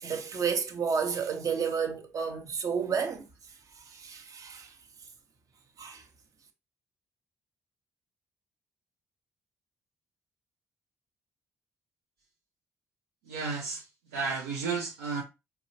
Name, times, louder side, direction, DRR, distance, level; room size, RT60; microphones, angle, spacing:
voice 1, 0.0-3.2 3.9-4.7 5.8-6.0, right 6 dB, 55° right, 0.9 m, -31 dB
voice 2, 13.2-15.2, right 5 dB, 80° right, 0.6 m, -33 dB
4.8 x 3.3 x 2.7 m
hypercardioid pair, 40°, 7 cm